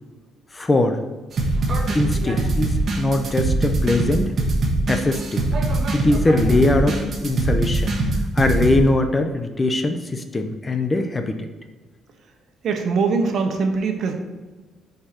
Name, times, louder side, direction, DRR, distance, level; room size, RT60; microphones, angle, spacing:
voice 1, 0.5-1.0 1.9-4.3 4.9-5.4 5.9-8.0 8.3-11.5, left 2 dB, 20° left, 7 dB, 0.5 m, -21 dB
sound 1, 1.4-8.9, right 2 dB, 40° right, 1.2 m, -22 dB
voice 2, 12.6-14.1, right 4 dB, 55° right, 5 dB, 0.8 m, -22 dB
5.0 x 4.5 x 4.3 m, 1.3 s
cardioid pair, 115°, 0 cm